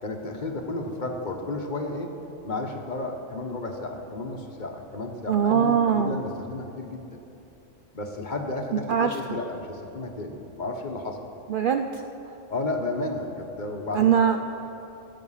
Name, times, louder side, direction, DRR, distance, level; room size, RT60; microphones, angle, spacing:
voice 1, 0.0-2.2 2.4-7.1 7.9-11.2 12.5-14.4, left 2 dB, 40° left, 3 dB, 1.1 m, -32 dB
voice 2, 5.3-6.2 8.9-9.4 11.5-12.0 13.9-14.4, right 8 dB, 60° right, 6 dB, 0.5 m, -22 dB
14.5 x 9.1 x 5.7 m, 2.9 s
omnidirectional pair, 1.3 m